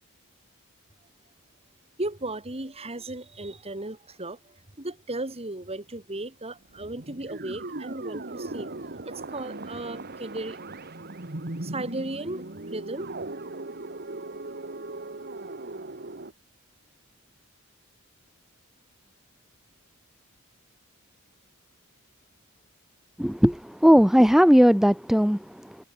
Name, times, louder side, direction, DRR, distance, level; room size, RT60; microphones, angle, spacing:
voice 1, 2.0-10.6 11.6-13.1, right 2 dB, 25° right, 2.5 m, -36 dB
sound 1, 6.0-6.1 6.7-16.3, right 2 dB, 45° right, 1.9 m, -38 dB
voice 2, 23.2-25.8, equal, ahead, 0.7 m, -18 dB
head